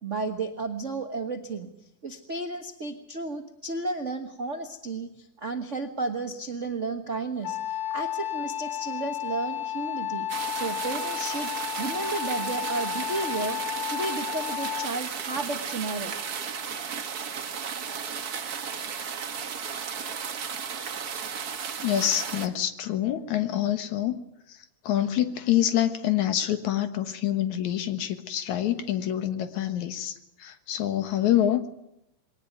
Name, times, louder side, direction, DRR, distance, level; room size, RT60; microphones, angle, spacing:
voice 1, 0.0-1.7 2.0-10.3 10.5-11.5 11.8-13.6 13.9-16.2, right 3 dB, 80° right, 5 dB, 0.6 m, -33 dB
Wind instrument woodwind instrument, 7.4-15.1, left 12 dB, 45° left, 1.7 m, -32 dB
sound 1, 10.3-22.5, right 6 dB, 60° right, 1.0 m, -34 dB
voice 2, 21.8-24.2 24.5-24.6 24.8-30.1 30.4-31.7, left 11 dB, 65° left, 10 dB, 2.6 m, -26 dB
21.5 x 18.5 x 9.3 m, 0.79 s
omnidirectional pair, 3.8 m